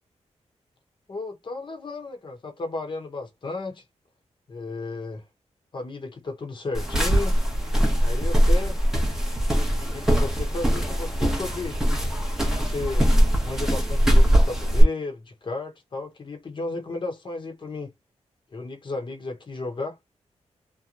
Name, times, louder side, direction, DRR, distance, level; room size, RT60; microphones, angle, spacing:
voice 1, 1.1-3.8 4.5-5.2 5.7-7.4 8.0-8.8 9.7-11.8 12.6-13.1 13.4-17.9 18.5-20.0, left 3 dB, 40° left, 0.9 m, -34 dB
sound 1, 6.7-14.8, equal, 5° right, 0.9 m, -21 dB
2.9 x 2.2 x 2.4 m
wide cardioid pair, 120°, 12 cm